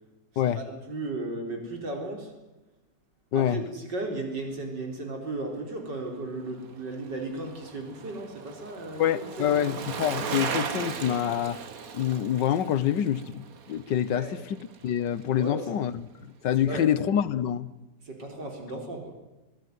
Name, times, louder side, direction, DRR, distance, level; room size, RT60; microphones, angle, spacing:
voice 1, 0.5-2.3 3.3-9.6 14.1-14.3 15.4-15.7 16.6-16.9 18.0-19.2, right 2 dB, 85° right, 3 dB, 4.6 m, -35 dB
voice 2, 3.3-3.6 9.0-11.6 11.9-14.6 14.8-15.9 16.4-17.7, left 10 dB, 90° left, 16 dB, 1.7 m, -26 dB
Bicycle, 6.5-14.9 15.2-15.3, right 6 dB, 55° right, 1.7 m, -37 dB
26.0 x 16.5 x 9.4 m, 1.1 s
omnidirectional pair, 1.8 m